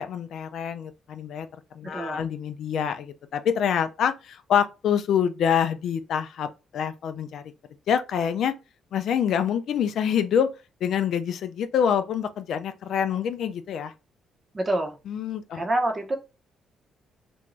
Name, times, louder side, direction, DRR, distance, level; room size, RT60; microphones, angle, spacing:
voice 1, 0.0-1.5 1.8-7.4 7.9-8.5 8.9-10.5 10.8-13.9 15.1-15.6, left 8 dB, 70° left, 0.3 m, -26 dB
voice 2, 1.9-2.2 14.5-15.0 15.5-16.2, right 1 dB, 25° right, 0.7 m, -26 dB
2.5 x 2.2 x 3.0 m
cardioid pair, 90°, 0 cm